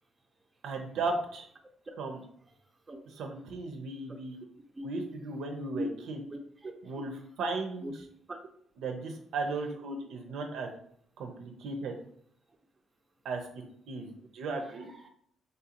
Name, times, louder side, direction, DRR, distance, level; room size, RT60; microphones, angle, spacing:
voice 1, 0.6-1.5 2.0-2.2 3.2-4.4 4.8-6.2 6.8-7.1 7.4-7.9 8.8-10.7 11.2-11.9 13.2-13.4 13.9-14.9, right 3 dB, 80° right, 3 dB, 0.5 m, -35 dB
voice 2, 6.3-7.1 7.8-7.9 8.3-8.4 14.6-15.1, equal, 25° right, 3 dB, 0.5 m, -40 dB
3.3 x 2.5 x 2.8 m, 0.65 s
cardioid pair, 90°, 0 cm